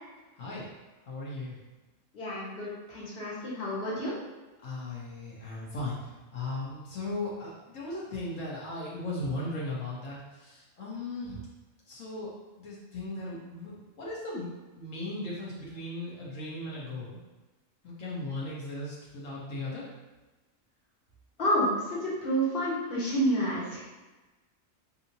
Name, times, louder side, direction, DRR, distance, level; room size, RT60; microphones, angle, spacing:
voice 1, 0.3-0.7 1.1-1.6 4.6-6.0 6.3-11.4 11.9-17.2 17.8-19.9, left 2 dB, 75° left, -6 dB, 1.3 m, -37 dB
voice 2, 2.1-4.2 21.4-23.8, equal, 50° left, -7 dB, 1.4 m, -29 dB
4.7 x 2.8 x 2.7 m, 1.2 s
omnidirectional pair, 1.4 m